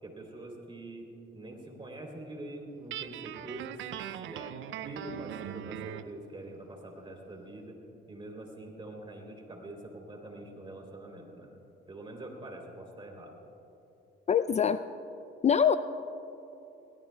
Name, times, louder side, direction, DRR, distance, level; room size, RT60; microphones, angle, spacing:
voice 1, 0.0-1.1 1.3-4.6 4.8-7.8 8.1-11.5 11.9-13.4, right 1 dB, 25° right, 1 dB, 3.2 m, -44 dB
Guitar, 2.9-6.1, right 11 dB, 75° right, 0.5 m, -40 dB
voice 2, 14.3-14.8 15.4-15.8, left 7 dB, 35° left, 12 dB, 0.4 m, -23 dB
21.5 x 17.5 x 2.3 m, 3.0 s
cardioid pair, 90°, 20 cm